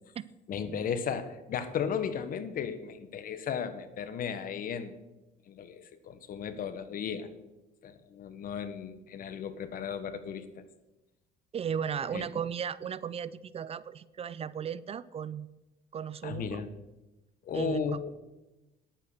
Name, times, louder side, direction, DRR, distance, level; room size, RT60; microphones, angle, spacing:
voice 1, 0.5-4.9 5.5-7.3 7.8-10.6 12.1-12.2 16.2-16.7 17.4-18.1, left 7 dB, 55° left, 12 dB, 1.3 m, -35 dB
voice 2, 11.5-15.5 15.9-16.7 17.5-18.1, right 8 dB, 35° right, 18 dB, 0.4 m, -36 dB
10.5 x 8.9 x 6.7 m, 1.0 s
cardioid pair, 110°, 17 cm